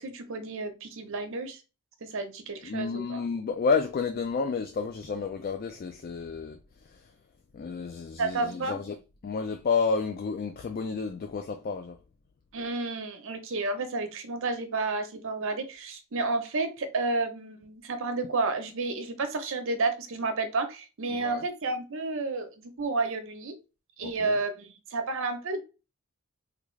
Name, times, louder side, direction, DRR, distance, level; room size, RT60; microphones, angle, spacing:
voice 1, 0.0-1.6 2.0-3.2 8.2-8.8 12.5-23.6 24.0-25.6, right 3 dB, 60° right, 0.7 m, -31 dB
voice 2, 2.6-6.6 6.9-7.0 7.5-9.0 9.2-12.0 21.1-21.4 24.0-24.4, left 5 dB, 45° left, 0.3 m, -30 dB
3.6 x 2.3 x 3.1 m
head